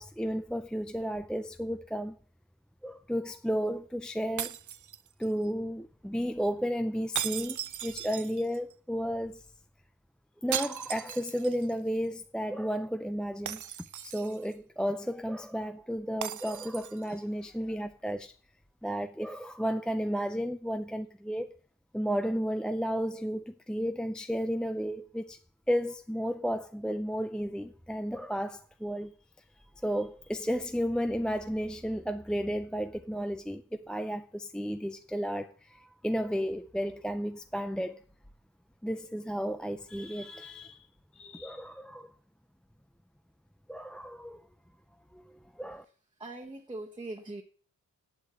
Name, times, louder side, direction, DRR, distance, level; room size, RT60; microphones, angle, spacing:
voice 1, 0.0-2.2 2.8-4.6 5.2-9.5 10.4-13.6 14.0-18.3 18.8-21.5 21.9-25.4 25.7-29.1 29.6-38.0 38.8-40.9 41.1-42.1 43.7-44.4 45.1-45.8, equal, ahead, 0.5 m, -33 dB
sound 1, 4.4-5.5 7.1-8.7 10.5-11.7 12.0-12.1 13.5-14.5 16.2-17.1, right 10 dB, 65° right, 0.5 m, -37 dB
voice 2, 46.2-47.4, right 2 dB, 15° right, 1.4 m, -41 dB
8.5 x 8.3 x 8.2 m
wide cardioid pair, 150°, 33 cm